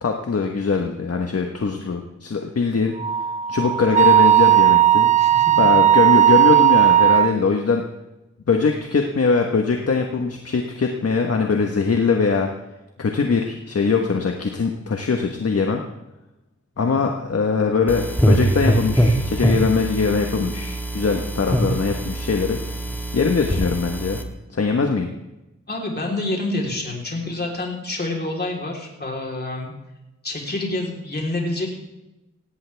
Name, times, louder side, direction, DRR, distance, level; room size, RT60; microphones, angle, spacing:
voice 1, 0.0-2.9 3.5-5.1 5.6-7.8 8.5-12.5 13.0-15.8 16.8-22.6 23.1-24.2 24.5-25.1, left 4 dB, 50° left, 3 dB, 1.3 m, -21 dB
Wind instrument woodwind instrument, 3.0-7.3, right 11 dB, 25° right, 0.5 m, -15 dB
voice 2, 5.2-5.5 16.8-17.0 25.7-29.7 30.2-31.8, left 2 dB, 35° left, -1 dB, 3.8 m, -27 dB
sound 1, 17.9-24.2, right 1 dB, 5° left, 1.7 m, -23 dB
17.5 x 17.5 x 3.5 m, 0.96 s
wide cardioid pair, 130°, 30 cm